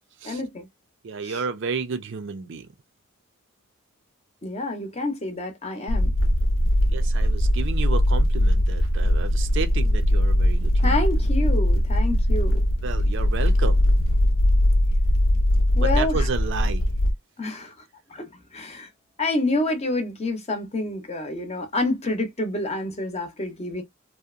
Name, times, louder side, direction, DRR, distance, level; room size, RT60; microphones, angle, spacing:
voice 1, 0.2-0.7 1.3-1.4 4.4-6.1 10.8-12.6 15.7-16.2 17.4-17.7 18.1-18.9 19.2-23.8, left 2 dB, 30° left, 0.7 m, -28 dB
voice 2, 1.0-2.7 6.9-11.0 12.8-13.9 15.8-16.9, right 5 dB, 60° right, 0.4 m, -32 dB
sound 1, 5.9-17.1, left 1 dB, 65° left, 0.5 m, -20 dB
2.7 x 2.0 x 2.4 m
head